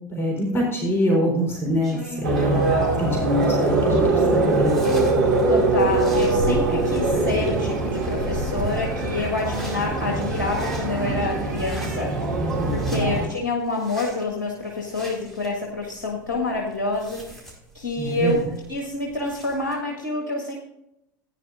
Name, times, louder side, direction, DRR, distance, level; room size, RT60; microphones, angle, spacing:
voice 1, 0.1-4.7 12.6-13.1 18.0-18.4, equal, 20° left, -2 dB, 3.7 m, -24 dB
sound 1, 1.5-19.7, equal, 5° left, 4.7 m, -43 dB
sound 2, 2.2-13.3, right 3 dB, 65° right, 2.6 m, -22 dB
voice 2, 2.4-3.1 5.5-17.5 17.7-18.4 18.7-20.5, left 3 dB, 65° left, -1 dB, 1.7 m, -28 dB
15.5 x 9.8 x 2.5 m, 0.82 s
figure-of-eight pair, 75°, 10 cm